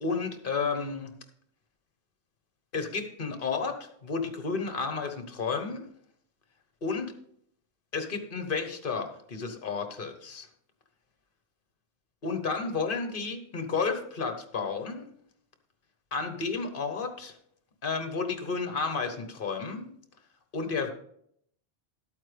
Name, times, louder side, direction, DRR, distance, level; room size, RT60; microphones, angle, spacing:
voice 1, 0.0-1.1 2.7-5.9 6.8-7.1 7.9-10.5 12.2-15.1 16.1-17.3 17.8-19.9 20.5-20.9, left 4 dB, 50° left, 7 dB, 1.3 m, -32 dB
12.5 x 8.7 x 3.4 m, 0.68 s
omnidirectional pair, 1.1 m